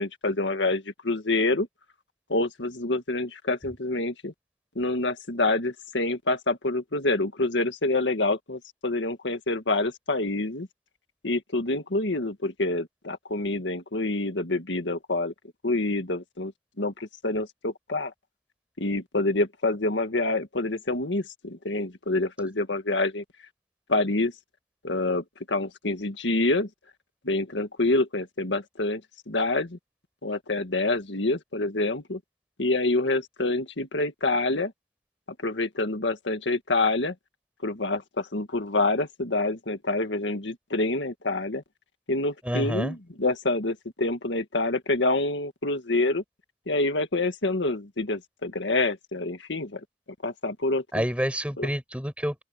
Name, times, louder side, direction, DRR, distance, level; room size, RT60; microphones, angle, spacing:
voice 1, 0.0-1.7 2.3-4.3 4.8-10.7 11.2-15.3 15.6-16.5 16.8-18.1 18.8-23.2 23.9-24.3 24.8-26.7 27.2-29.0 29.3-29.8 30.2-32.2 32.6-34.7 35.4-37.1 37.6-41.6 42.1-46.2 46.7-49.8 50.2-51.0 51.6-51.7, left 2 dB, 80° left, 1.8 m, -27 dB
voice 2, 42.4-43.0 50.9-52.4, equal, 5° right, 6.9 m, -28 dB
open air
head